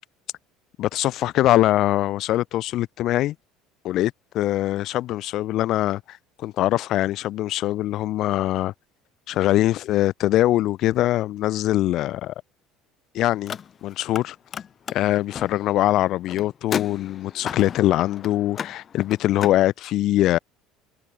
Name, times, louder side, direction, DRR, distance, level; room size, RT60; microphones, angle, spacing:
voice 1, 0.8-3.4 3.8-8.7 9.3-12.3 13.1-14.4 14.9-20.4, left 14 dB, 60° left, 1.8 m, -22 dB
Car, 13.3-14.2 14.5-19.6, left 8 dB, 40° left, 5.0 m, -34 dB
hypercardioid pair, 80°, 0 cm